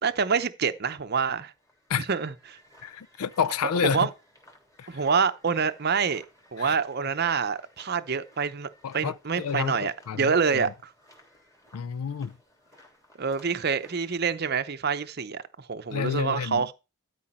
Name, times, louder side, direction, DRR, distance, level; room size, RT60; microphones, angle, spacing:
voice 1, 0.0-1.5 2.0-2.6 3.8-4.1 4.9-6.2 6.5-8.7 8.9-10.9 13.2-16.7, right 5 dB, 45° right, 0.7 m, -27 dB
sound 1, 1.4-14.2, left 1 dB, 15° left, 3.1 m, -58 dB
voice 2, 2.8-4.1 4.8-4.9 6.6-6.8 8.8-10.6 11.7-12.3 15.9-16.6, left 7 dB, 85° left, 0.4 m, -29 dB
13.0 x 4.9 x 4.3 m
head